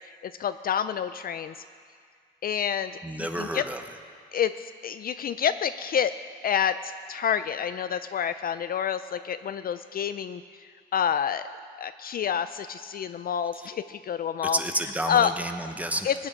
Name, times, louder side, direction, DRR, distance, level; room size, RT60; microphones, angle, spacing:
voice 1, 0.2-1.6 2.4-2.9 3.2-3.6 4.3-6.1 6.4-10.4 10.9-11.4 11.8-14.6 15.1-15.3 16.0-16.1, left 8 dB, 50° left, 12 dB, 0.4 m, -28 dB
voice 2, 3.0-3.8 14.4-16.1, right 1 dB, 5° right, 6 dB, 1.1 m, -30 dB
20.5 x 8.8 x 5.1 m, 2.1 s
cardioid pair, 90°, 20 cm